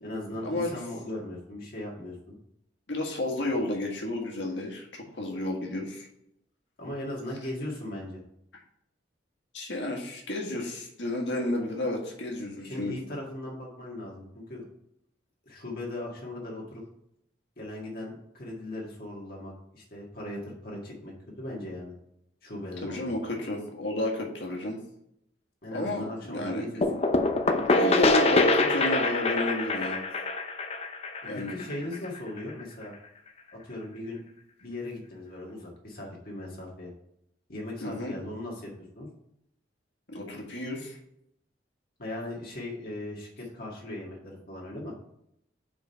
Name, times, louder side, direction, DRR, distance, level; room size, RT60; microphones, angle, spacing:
voice 1, 0.0-2.4 6.8-8.2 12.6-14.7 15.5-16.8 17.6-21.9 22.4-23.1 25.6-26.8 31.3-32.9 33.5-34.2 34.6-36.9 37.5-39.1 42.0-44.9, left 1 dB, 55° left, -3 dB, 1.7 m, -38 dB
voice 2, 2.9-6.1 9.5-12.9 22.8-24.8 25.7-26.8 27.6-30.0 31.3-31.6 37.8-38.1 40.1-41.0, left 2 dB, 80° left, 0 dB, 1.7 m, -32 dB
sound 1, 26.8-32.4, left 2 dB, 35° left, 0.6 m, -25 dB
5.1 x 4.8 x 5.6 m, 0.77 s
head